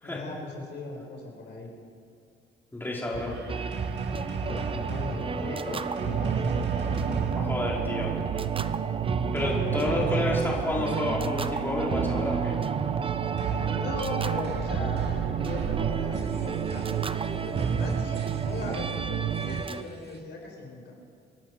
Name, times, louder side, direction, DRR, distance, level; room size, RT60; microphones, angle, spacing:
voice 1, 0.0-1.7 4.4-6.8 9.4-10.0 13.5-15.1 15.4-16.9 17.4-20.9, left 3 dB, 60° left, 0 dB, 4.1 m, -38 dB
voice 2, 2.7-3.3 7.4-8.1 9.3-12.5, left 1 dB, 10° left, -4 dB, 3.5 m, -30 dB
sound 1, 3.1-11.5 13.4-20.2, right 4 dB, 60° right, 1.6 m, -36 dB
sound 2, 3.5-19.8, right 5 dB, 25° right, 0.6 m, -32 dB
sound 3, 6.1-19.6, right 11 dB, 85° right, 0.6 m, -32 dB
27.0 x 11.0 x 4.6 m, 2.4 s
cardioid pair, 90°, 20 cm